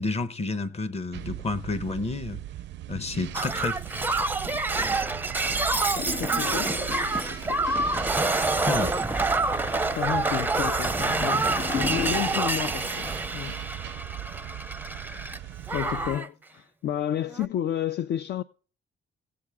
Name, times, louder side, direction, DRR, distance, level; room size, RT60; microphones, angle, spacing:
voice 1, 0.0-2.4 2.9-3.8 8.6-8.9, left 3 dB, 30° left, 1.0 m, -30 dB
sound 1, 1.1-16.2, right 14 dB, 65° right, 0.4 m, -39 dB
voice 2, 2.9-3.3 6.0-6.8 10.0-13.6 15.1-15.2 15.7-18.4, left 11 dB, 60° left, 0.4 m, -31 dB
Shatter, 3.3-15.4 15.7-16.3 17.3-17.5, right 3 dB, 10° right, 0.5 m, -27 dB
Gurgling / Toilet flush, 6.0-12.8 13.1-13.2, left 3 dB, 85° left, 5.5 m, -37 dB
17.0 x 7.7 x 3.5 m
cardioid pair, 90°, 20 cm